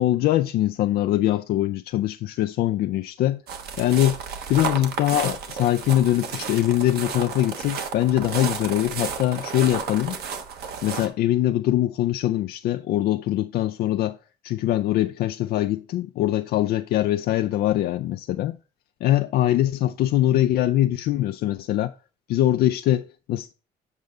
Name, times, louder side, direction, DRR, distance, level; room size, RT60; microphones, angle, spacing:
voice 1, 0.0-3.4 3.8-4.2 4.5-10.2 10.8-14.2 14.4-18.6 19.0-21.9 22.3-23.5, left 13 dB, 70° left, 0.4 m, -22 dB
sound 1, 3.5-11.1, right 6 dB, 70° right, 1.2 m, -32 dB
8.0 x 5.2 x 3.5 m
cardioid pair, 110°, 17 cm